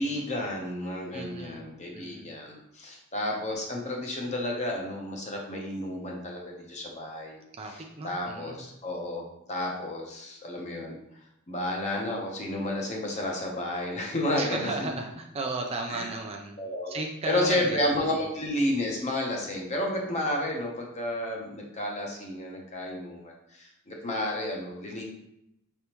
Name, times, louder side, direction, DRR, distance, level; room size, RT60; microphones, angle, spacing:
voice 1, 0.0-7.4 7.7-7.8 8.0-11.0 11.5-14.9 15.9-16.1 16.6-25.0, left 1 dB, 30° left, 0 dB, 0.8 m, -31 dB
voice 2, 1.1-2.3 7.5-8.6 14.4-16.6 16.9-18.3, right 3 dB, 25° right, 2 dB, 0.4 m, -36 dB
5.3 x 3.4 x 3.0 m, 0.81 s
head